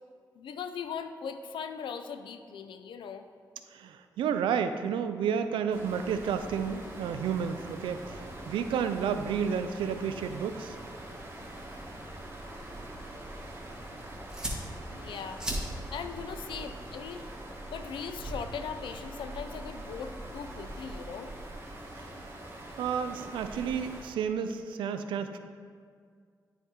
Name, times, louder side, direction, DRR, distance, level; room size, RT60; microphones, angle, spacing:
voice 1, 0.3-3.3 14.9-15.4 15.9-17.3 17.7-21.3, left 6 dB, 80° left, 8 dB, 0.5 m, -39 dB
voice 2, 3.7-10.8 22.8-25.4, right 7 dB, 85° right, 9 dB, 0.4 m, -31 dB
sound 1, 5.7-24.0, right 1 dB, 30° right, 1.6 m, -44 dB
sound 2, 11.3-21.5, right 1 dB, 10° right, 1.9 m, -42 dB
9.1 x 4.4 x 3.7 m, 2.1 s
supercardioid pair, 40°, 8 cm